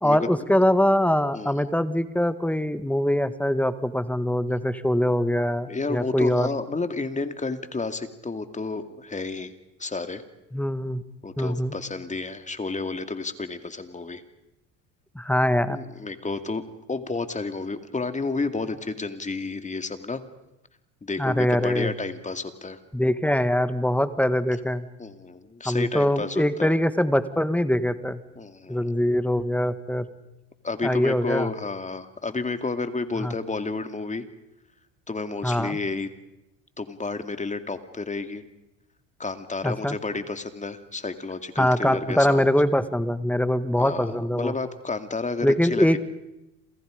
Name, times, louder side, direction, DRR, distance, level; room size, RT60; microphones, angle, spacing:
voice 1, 0.0-6.5 10.5-11.0 11.4-11.7 15.2-15.8 21.2-21.9 22.9-24.9 25.7-28.2 28.7-30.1 30.8-31.5 33.2-33.3 35.4-35.8 39.6-40.0 41.6-44.5 45.4-46.0, left 1 dB, 5° left, 12 dB, 1.6 m, -23 dB
voice 2, 1.3-1.7 5.7-9.5 9.8-10.2 11.2-14.2 15.7-16.6 16.9-20.2 21.0-22.8 25.0-26.7 28.4-29.0 30.6-34.2 35.1-36.1 36.8-38.4 39.2-42.5 43.8-46.0, left 3 dB, 20° left, 9 dB, 2.3 m, -31 dB
29.5 x 27.5 x 5.1 m, 0.92 s
hypercardioid pair, 75°, 37 cm